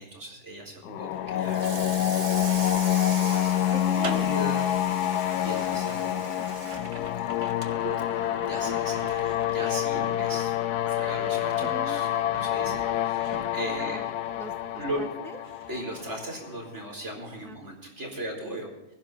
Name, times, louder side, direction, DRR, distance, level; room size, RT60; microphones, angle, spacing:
voice 1, 0.0-4.7 5.1-6.4 8.1-10.6 10.9-14.0 14.7-15.0 15.7-18.9, right 1 dB, 50° right, 1 dB, 4.4 m, -38 dB
sound 1, 0.8-16.7, left 12 dB, 90° left, 1.2 m, -27 dB
sound 2, 1.0-15.1 15.4-16.9 17.2-17.5, right 3 dB, 25° right, 0.8 m, -44 dB
Water tap faucet / Sink (filling or washing), 1.4-8.1 8.4-8.7 9.0-9.1 9.6-9.7 10.8-10.9 11.3-11.6, right 4 dB, 85° right, 2.4 m, -40 dB
voice 2, 3.7-4.7 6.4-7.1 11.6-12.0 13.8-15.4 17.4-17.6, right 2 dB, ahead, 6 dB, 0.9 m, -42 dB
21.0 x 10.5 x 3.6 m, 0.97 s
omnidirectional pair, 1.6 m